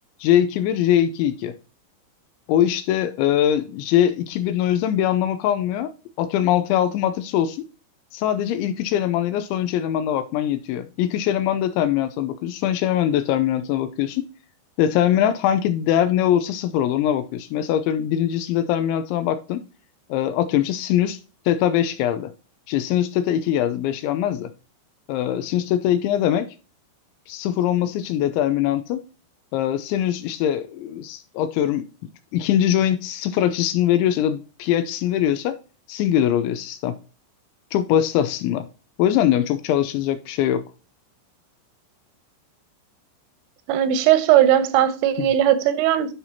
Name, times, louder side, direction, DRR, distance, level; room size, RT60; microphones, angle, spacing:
voice 1, 0.2-1.5 2.5-5.9 6.2-7.6 8.1-14.3 14.8-19.6 20.1-21.2 21.5-22.3 22.7-24.5 25.1-26.5 27.3-29.0 29.5-31.8 32.3-35.5 35.9-37.0 37.7-38.7 39.0-40.7, left 11 dB, 80° left, 2.8 m, -22 dB
voice 2, 43.7-46.1, right 11 dB, 90° right, 3.3 m, -18 dB
11.0 x 6.0 x 2.8 m
omnidirectional pair, 5.6 m